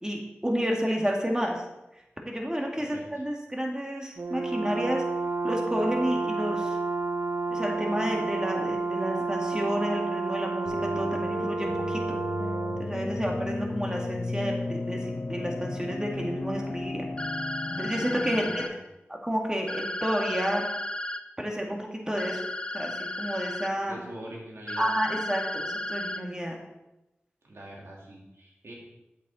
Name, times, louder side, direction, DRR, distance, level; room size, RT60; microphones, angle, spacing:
voice 1, 0.0-1.6 2.2-5.0 5.4-6.8 7.5-12.2 12.8-17.1 17.8-18.6 19.1-20.6 21.4-22.4 22.7-24.0 24.8-26.6, equal, 15° right, 0 dB, 2.2 m, -30 dB
voice 2, 2.8-3.2 18.3-18.8 23.9-24.9 27.4-28.7, right 1 dB, 90° right, -3 dB, 2.5 m, -44 dB
Brass instrument, 4.2-12.9, right 3 dB, 60° right, 0.5 m, -30 dB
sound 1, 10.7-18.7, left 2 dB, 85° left, 1.1 m, -34 dB
sound 2, 17.2-18.7 19.7-21.2 22.2-23.7 24.7-26.2, left 1 dB, 25° left, 0.7 m, -34 dB
8.8 x 8.1 x 4.3 m, 0.95 s
wide cardioid pair, 40°, 4 cm